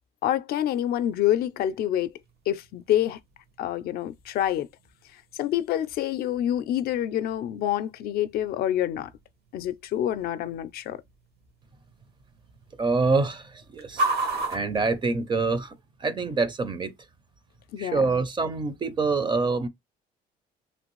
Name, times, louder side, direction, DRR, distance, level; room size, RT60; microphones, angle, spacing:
voice 1, 0.2-2.1 2.5-3.2 3.6-4.7 5.3-9.1 9.5-11.0 17.7-18.0, left 11 dB, 65° left, 0.4 m, -27 dB
sound 1, 1.0-15.8, right 2 dB, 75° right, 1.1 m, -38 dB
voice 2, 12.8-16.9 17.8-19.7, right 4 dB, 25° right, 0.5 m, -26 dB
3.0 x 2.4 x 3.0 m
cardioid pair, 110°, 17 cm